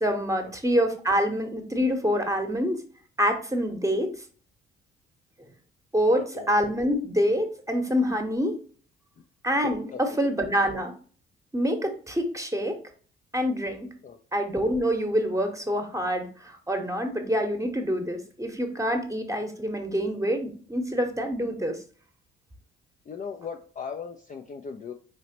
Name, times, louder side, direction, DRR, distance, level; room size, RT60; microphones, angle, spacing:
voice 1, 0.0-2.8 3.2-4.1 5.9-8.6 9.4-10.9 11.5-12.8 13.3-13.9 14.3-21.8, equal, 10° right, 5 dB, 1.0 m, -26 dB
voice 2, 6.2-6.5 9.9-10.3 14.0-14.2 23.1-24.9, left 6 dB, 25° left, 4 dB, 0.4 m, -38 dB
4.8 x 3.2 x 2.9 m, 0.43 s
figure-of-eight pair, 45°, 32 cm